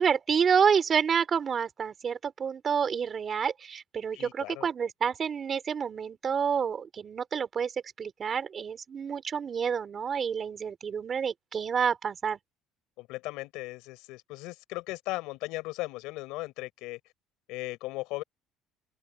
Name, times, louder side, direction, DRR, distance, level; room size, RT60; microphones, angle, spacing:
voice 1, 0.0-7.7 8.0-12.4, right 7 dB, 35° right, 3.7 m, -28 dB
voice 2, 4.1-4.7 13.0-17.0 17.5-18.2, left 21 dB, 80° left, 5.0 m, -37 dB
open air
cardioid pair, 120°, 0 cm